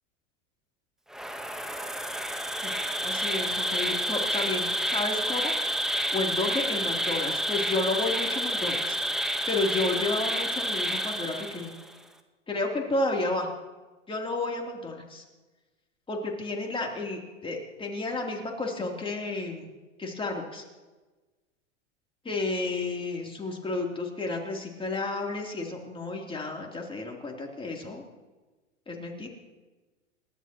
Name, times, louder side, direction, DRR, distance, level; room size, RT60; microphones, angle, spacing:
Insect, 1.1-11.9, equal, ahead, 1.3 m, -29 dB
voice 1, 3.0-5.5 6.1-9.0 9.5-11.7 12.5-13.5 14.1-15.2 16.1-19.7 20.0-20.6 22.2-28.0 28.9-29.3, left 2 dB, 15° left, 0 dB, 3.4 m, -31 dB
28.5 x 12.5 x 3.1 m, 1.2 s
hypercardioid pair, 110°, 37 cm